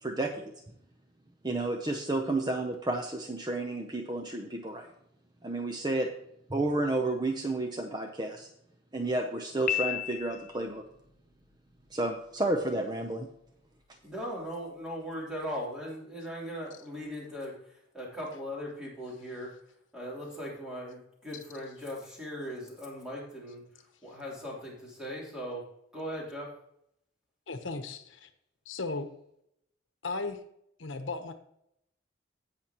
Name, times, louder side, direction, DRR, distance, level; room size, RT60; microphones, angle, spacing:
voice 1, 0.0-0.5 1.4-4.9 5.4-6.1 6.5-8.5 8.9-10.8 11.9-13.3, right 2 dB, 20° right, 4 dB, 0.6 m, -31 dB
Piano, 9.7-10.8, left 11 dB, 45° left, 0.4 m, -32 dB
voice 2, 14.0-19.5 19.9-23.6 24.0-25.6 25.9-26.5, equal, 5° right, -5 dB, 3.2 m, -39 dB
voice 3, 27.5-28.3 28.7-29.1 30.0-30.4 30.8-31.3, left 3 dB, 80° left, 7 dB, 1.0 m, -35 dB
16.5 x 5.9 x 3.0 m, 0.75 s
head